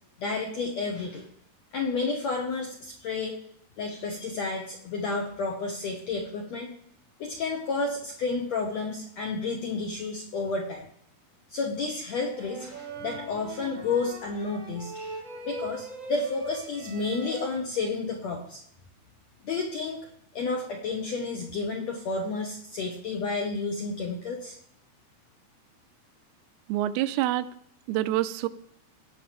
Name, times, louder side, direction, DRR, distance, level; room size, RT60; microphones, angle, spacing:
voice 1, 0.2-1.3 1.7-3.4 3.8-6.7 7.2-10.9 11.5-18.6 19.4-20.0 20.3-24.5, left 3 dB, 75° left, 1 dB, 1.6 m, -31 dB
sound 1, 12.2-17.5, right 2 dB, 50° right, 0.9 m, -41 dB
voice 2, 26.7-27.5 27.9-28.5, right 14 dB, 85° right, 13 dB, 2.6 m, -26 dB
18.0 x 6.0 x 5.1 m, 0.68 s
omnidirectional pair, 4.5 m